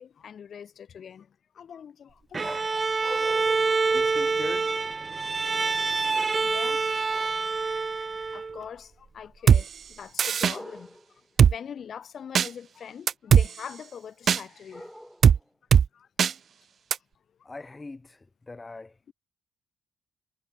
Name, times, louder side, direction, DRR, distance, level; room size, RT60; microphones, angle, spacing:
voice 1, 0.0-2.5 3.6-3.9 4.2-4.3 5.1-5.6 5.9-6.8 8.3-11.0 11.4-14.9 15.9-16.1, left 8 dB, 55° left, 6.2 m, -43 dB
Bowed string instrument, 2.3-8.6, right 4 dB, 30° right, 1.7 m, -26 dB
sound 1, 2.4-4.9 6.1-6.7 7.1-7.6 10.5-11.2 14.7-15.5, equal, ahead, 5.4 m, -44 dB
voice 2, 3.9-4.7 17.4-19.1, left 3 dB, 20° left, 4.2 m, -41 dB
Drum kit, 9.5-9.6 10.2-10.5 11.4-11.5 12.3-12.5 13.1-13.5 14.3-14.4 15.2-15.4 15.7-15.9 16.2-16.3 16.9-17.0, right 7 dB, 55° right, 1.1 m, -17 dB
cardioid pair, 90°, 0 cm